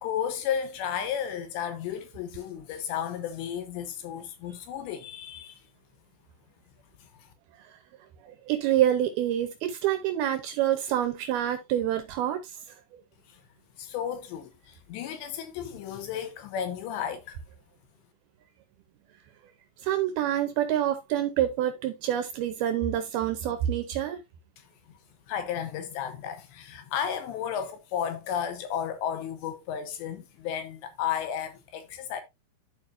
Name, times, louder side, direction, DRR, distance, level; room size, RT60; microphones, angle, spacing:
voice 1, 0.0-5.6 7.0-7.3 13.3-13.4 13.8-17.4 24.6-24.7 25.3-32.2, left 9 dB, 80° left, 3.0 m, -33 dB
voice 2, 8.2-12.5 19.8-24.2, right 11 dB, 80° right, 2.2 m, -27 dB
12.5 x 4.8 x 2.5 m
omnidirectional pair, 5.4 m